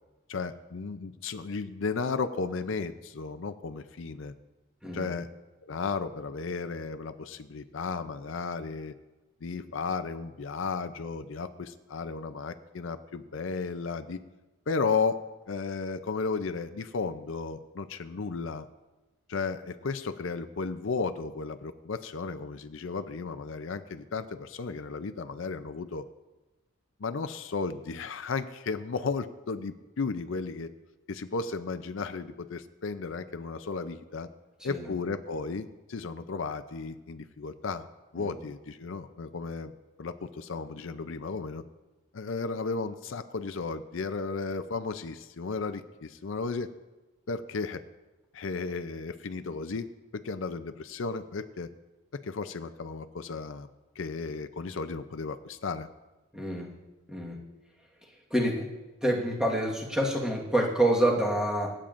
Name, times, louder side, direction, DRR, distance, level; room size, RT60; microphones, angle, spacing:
voice 1, 0.3-4.3 4.9-5.3 5.6-8.9 9.4-14.2 14.7-15.2 15.5-18.7 19.3-26.1 27.0-30.7 31.1-34.3 34.6-37.9 38.1-39.7 40.0-41.6 42.1-46.7 47.3-47.8 48.3-49.9 50.1-51.7 52.1-53.7 54.0-55.9, left 4 dB, 70° left, 10 dB, 0.5 m, -34 dB
voice 2, 4.8-5.1 34.6-34.8 38.2-38.3 56.3-56.7 57.1-57.4 58.3-58.7 59.0-61.7, right 1 dB, 5° right, -2 dB, 1.5 m, -27 dB
25.0 x 8.8 x 2.6 m, 1.1 s
head